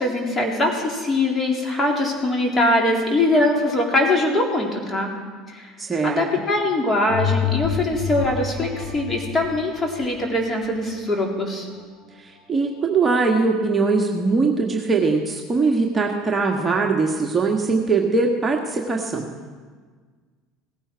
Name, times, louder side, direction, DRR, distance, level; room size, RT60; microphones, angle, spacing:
voice 1, 0.0-5.1 5.5-5.7 6.0-11.7, left 1 dB, 20° left, 0 dB, 3.8 m, -22 dB
voice 2, 5.8-6.2 12.2-19.3, right 4 dB, 20° right, 1 dB, 1.6 m, -21 dB
sound 1, 7.1-12.0 12.5-12.6, left 7 dB, 55° left, 4.5 m, -29 dB
17.5 x 15.5 x 4.7 m, 1.5 s
figure-of-eight pair, 65°, 0 cm